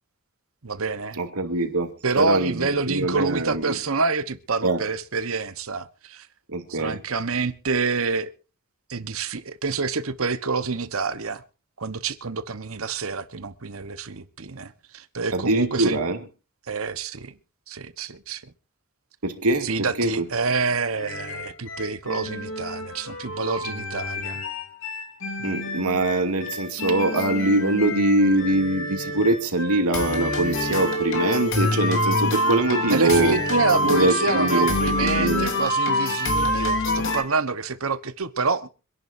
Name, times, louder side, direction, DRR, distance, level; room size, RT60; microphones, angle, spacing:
voice 1, 0.6-1.2 2.0-6.3 6.7-8.3 8.9-11.4 11.8-16.0 16.7-17.3 17.7-18.4 19.6-24.4 25.4-25.5 32.9-38.7, right 4 dB, 65° right, 1.1 m, -27 dB
voice 2, 1.2-3.7 4.6-4.8 6.5-7.0 15.3-16.2 19.2-20.2 25.4-33.3 33.8-35.5, right 2 dB, 85° right, 2.6 m, -23 dB
sound 1, 21.0-37.2, left 1 dB, 60° left, 3.0 m, -27 dB
26.0 x 11.0 x 2.7 m
head